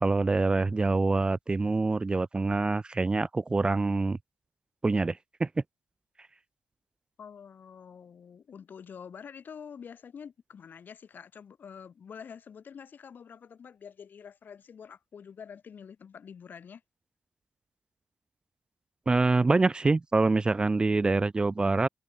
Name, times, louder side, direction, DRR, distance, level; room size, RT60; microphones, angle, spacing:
voice 1, 0.0-4.2 4.8-5.5 19.1-21.9, right 3 dB, 25° right, 0.4 m, -25 dB
voice 2, 7.2-16.8, left 7 dB, 60° left, 1.1 m, -47 dB
cardioid pair, 90°, 4 cm